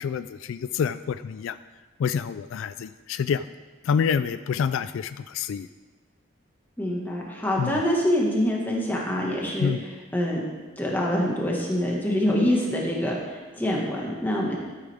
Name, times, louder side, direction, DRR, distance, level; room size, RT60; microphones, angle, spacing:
voice 1, 0.0-1.6 2.0-3.4 3.9-5.7 7.6-7.8 9.6-9.8, left 7 dB, 80° left, 13 dB, 0.3 m, -27 dB
voice 2, 6.8-10.4 10.8-14.6, equal, 10° left, -3 dB, 1.7 m, -25 dB
13.0 x 8.4 x 3.5 m, 1.3 s
head